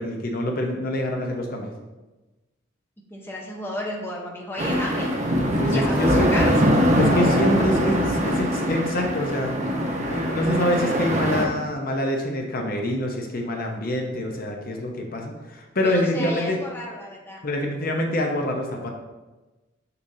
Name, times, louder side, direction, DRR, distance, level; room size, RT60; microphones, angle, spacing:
voice 1, 0.0-1.7 5.5-6.6 7.0-9.5 10.1-16.6 17.4-18.9, left 1 dB, 45° left, 1 dB, 0.7 m, -26 dB
voice 2, 3.1-5.1 5.7-6.6 15.8-17.4, left 1 dB, 10° left, -2 dB, 0.8 m, -32 dB
sound 1, 4.6-11.5, equal, 35° right, 0.7 m, -22 dB
6.9 x 6.7 x 2.7 m, 1.1 s
head